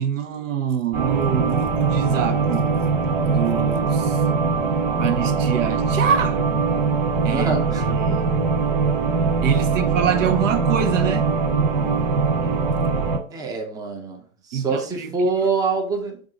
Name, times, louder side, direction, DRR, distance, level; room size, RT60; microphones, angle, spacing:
voice 1, 0.0-2.7 3.2-4.2 5.0-6.4 7.2-8.3 9.4-11.3 14.5-15.1, right 8 dB, 80° right, 0.7 m, -25 dB
sound 1, 0.9-13.2, right 4 dB, 50° right, 1.1 m, -21 dB
voice 2, 7.3-8.3 13.3-16.2, right 4 dB, 10° right, 0.5 m, -26 dB
3.6 x 2.4 x 3.7 m
hypercardioid pair, 130°, 37 cm